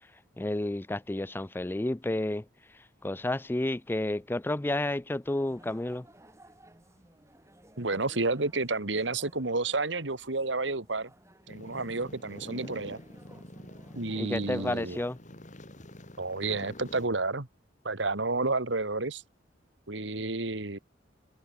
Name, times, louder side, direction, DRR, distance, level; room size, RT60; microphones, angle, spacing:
voice 1, 0.4-2.4 3.0-6.1 14.2-15.2, left 1 dB, 10° left, 0.4 m, -31 dB
sound 1, 5.2-15.2, right 1 dB, 15° right, 5.6 m, -56 dB
voice 2, 7.8-11.1 11.5-13.0 14.0-15.0 16.2-17.5 17.8-19.2 19.9-20.8, right 3 dB, 75° right, 2.2 m, -30 dB
sound 2, 11.5-17.1, left 1 dB, 40° left, 3.3 m, -47 dB
head